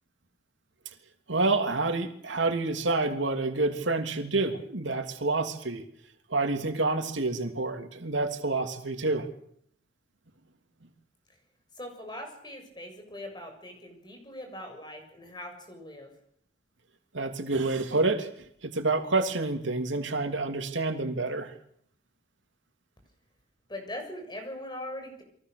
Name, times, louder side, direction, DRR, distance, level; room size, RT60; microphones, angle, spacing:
voice 1, 1.3-5.8 6.3-9.3 17.1-18.3 18.6-21.5, right 3 dB, 90° right, 5 dB, 3.1 m, -28 dB
voice 2, 11.8-16.1 23.7-25.2, left 1 dB, 25° left, 4 dB, 7.1 m, -41 dB
29.5 x 23.0 x 6.9 m, 0.68 s
head